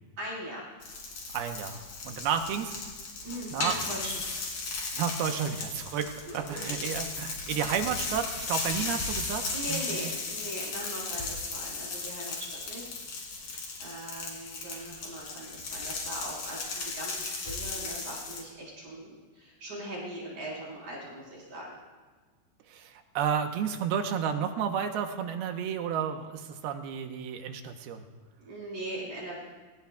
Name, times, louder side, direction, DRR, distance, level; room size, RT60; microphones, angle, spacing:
voice 1, 0.2-0.6 3.2-4.5 6.3-7.0 9.5-12.9 13.3-21.8 28.4-29.4, right 1 dB, 55° right, -5 dB, 6.0 m, -41 dB
sound 1, 0.8-18.4, left 3 dB, 60° left, 4.5 m, -36 dB
voice 2, 1.3-2.8 3.5-3.7 4.9-9.4 9.7-9.8 22.7-28.0, right 8 dB, 80° right, 6 dB, 2.8 m, -31 dB
25.5 x 19.0 x 2.3 m, 1.4 s
omnidirectional pair, 4.5 m